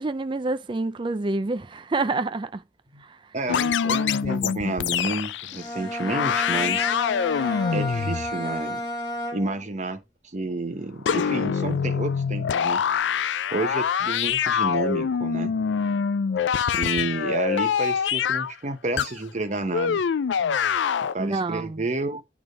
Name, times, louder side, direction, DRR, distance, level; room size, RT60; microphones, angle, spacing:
voice 1, 0.0-2.6 3.0-3.2 21.2-21.8, right 3 dB, 25° right, 0.4 m, -27 dB
voice 2, 3.3-6.9 7.7-8.8 9.3-10.0 10.3-12.8 13.5-15.5 16.7-20.0 21.1-22.2, right 2 dB, 45° right, 1.1 m, -30 dB
sound 1, 3.5-5.7 5.9-8.3 11.1-18.5 19.0-19.1 19.7-21.1, left 7 dB, 85° left, 0.4 m, -25 dB
Bowed string instrument, 5.5-9.8, equal, 25° left, 2.5 m, -32 dB
8.8 x 3.5 x 5.3 m
head